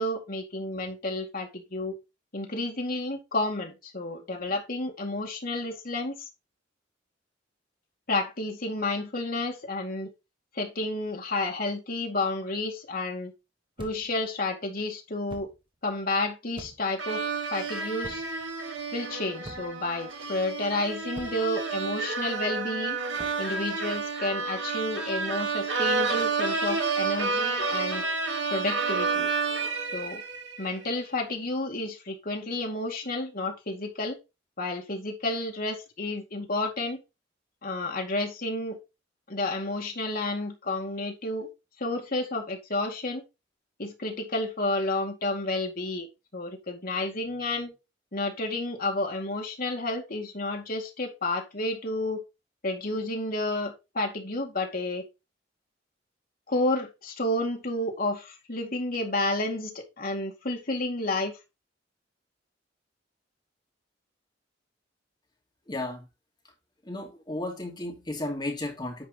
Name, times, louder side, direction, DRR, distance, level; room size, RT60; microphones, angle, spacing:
voice 1, 0.0-1.9 2.3-6.3 8.1-10.1 10.5-13.3 13.8-15.5 15.8-18.2 18.9-23.0 23.4-28.0 28.5-29.3 29.9-30.2 30.6-34.2 34.6-37.0 37.6-38.8 39.3-41.5 41.8-43.2 43.8-46.1 46.3-47.7 48.1-52.2 52.6-55.0 56.5-61.4, left 2 dB, 50° left, 2.3 m, -31 dB
sound 1, 13.8-14.2 15.3-15.6 16.6-17.0 18.0-18.4 19.4-19.9 21.2-21.5 23.2-23.5, right 1 dB, 30° right, 1.5 m, -44 dB
sound 2, 17.0-30.7, right 4 dB, 75° right, 2.1 m, -30 dB
voice 2, 65.7-66.1 66.8-69.0, left 2 dB, 25° left, 2.8 m, -34 dB
10.0 x 4.5 x 4.0 m
head